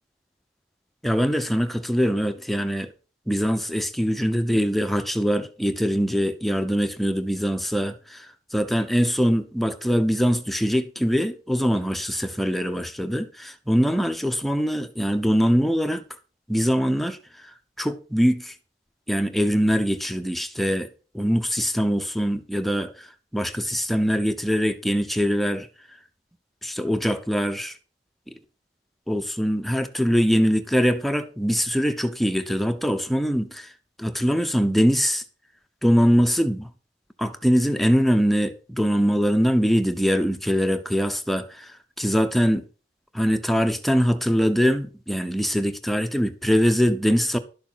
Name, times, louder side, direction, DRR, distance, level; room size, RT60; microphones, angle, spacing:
voice 1, 1.0-2.9 3.3-16.0 16.5-17.2 17.8-18.5 19.1-20.9 21.1-23.1 23.3-25.7 26.6-27.8 29.1-33.7 34.0-35.2 35.8-36.7 37.2-41.7 42.0-42.6 43.1-47.4, equal, ahead, 0.9 m, -23 dB
12.0 x 6.9 x 5.8 m
head